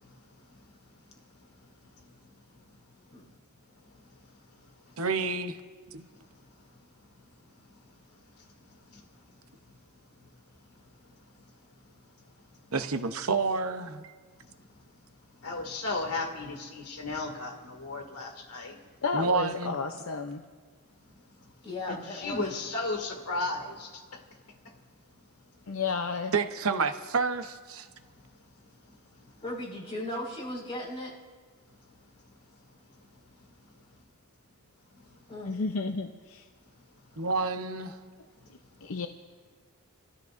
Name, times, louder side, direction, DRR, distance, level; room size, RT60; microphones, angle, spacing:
voice 1, 5.0-5.6 5.9-6.1 12.7-14.1 19.1-19.8 26.3-27.9 37.2-38.0, right 4 dB, 70° right, 8 dB, 0.9 m, -29 dB
voice 2, 15.4-18.8 21.9-24.2, left 3 dB, 90° left, 2 dB, 2.3 m, -34 dB
voice 3, 19.0-20.4 25.7-26.3 35.5-36.5 38.8-39.1, left 4 dB, 65° left, 5 dB, 0.7 m, -31 dB
voice 4, 21.6-22.4 29.4-31.1 35.3-35.5, left 1 dB, 25° left, -5 dB, 5.2 m, -37 dB
28.5 x 13.5 x 2.6 m, 1.5 s
head